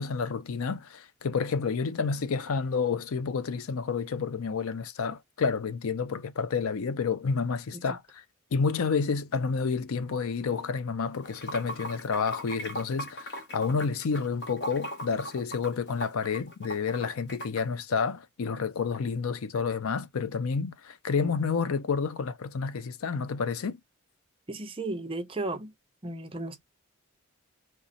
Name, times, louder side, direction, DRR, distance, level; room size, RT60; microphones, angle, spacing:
voice 1, 0.0-8.2 8.5-23.8, left 5 dB, 80° left, 0.5 m, -30 dB
Water / Sink (filling or washing), 11.2-17.6, equal, 55° left, 1.1 m, -39 dB
voice 2, 24.5-25.7 26.0-26.6, right 2 dB, 25° right, 0.6 m, -34 dB
3.2 x 3.0 x 4.0 m
head